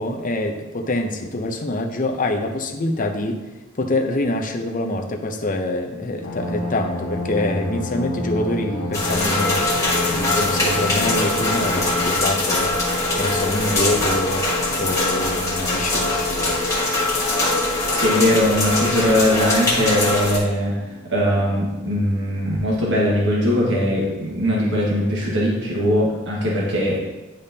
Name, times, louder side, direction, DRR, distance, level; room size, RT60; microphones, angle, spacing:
voice 1, 0.0-3.4 3.8-9.7 10.0-14.5 14.8-16.5, left 2 dB, 40° left, 4 dB, 0.7 m, -25 dB
sound 1, 6.2-23.2 23.9-24.0 24.4-24.7, left 1 dB, 85° left, 1.1 m, -33 dB
sound 2, 8.9-20.4, left 2 dB, 15° left, 1.7 m, -22 dB
voice 2, 17.6-20.8 21.1-27.0, equal, 60° right, -4 dB, 1.6 m, -20 dB
10.0 x 5.2 x 2.8 m, 1.1 s
head